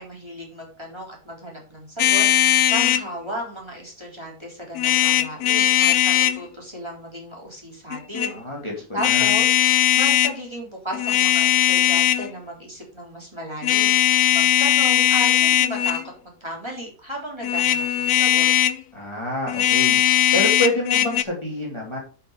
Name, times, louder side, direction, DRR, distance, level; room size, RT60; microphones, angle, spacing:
voice 1, 0.0-8.4 8.9-14.0 14.3-16.0 16.2-18.5, equal, 15° right, -2 dB, 3.9 m, -34 dB
sound 1, 2.0-3.1 4.8-6.4 7.9-8.3 9.0-10.3 10.9-12.3 13.6-16.1 17.4-18.8 19.5-21.2, left 12 dB, 75° left, 1.2 m, -19 dB
voice 2, 8.3-8.7 9.0-9.3 18.9-20.0 20.3-22.0, left 1 dB, 20° left, -2 dB, 2.8 m, -27 dB
11.5 x 5.9 x 4.9 m, 0.36 s
omnidirectional pair, 1.6 m